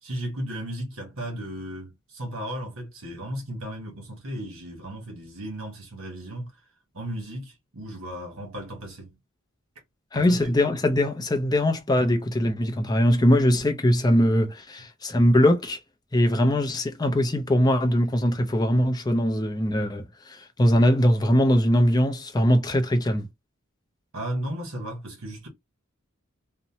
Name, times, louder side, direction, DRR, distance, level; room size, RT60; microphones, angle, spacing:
voice 1, 0.0-6.5 6.9-9.2 10.1-10.5 24.1-25.5, right 1 dB, 85° right, 1.4 m, -35 dB
voice 2, 10.1-15.8 16.1-23.3, equal, 20° left, 0.4 m, -21 dB
2.7 x 2.1 x 2.8 m
head